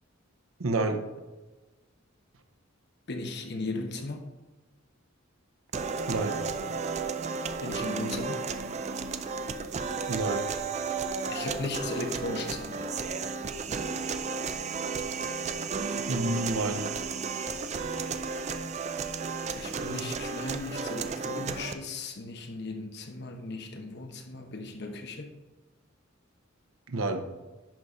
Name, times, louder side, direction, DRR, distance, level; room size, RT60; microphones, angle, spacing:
voice 1, 0.6-1.0 6.1-6.4 10.1-10.5 16.1-16.9 26.9-27.2, right 2 dB, 90° right, 7 dB, 0.9 m, -29 dB
voice 2, 3.1-4.3 7.6-8.4 11.3-12.9 19.6-25.3, left 2 dB, 55° left, 4 dB, 1.1 m, -37 dB
sound 1, 5.7-21.7, right 5 dB, 35° right, 0.4 m, -33 dB
11.0 x 4.1 x 5.0 m, 1.2 s
head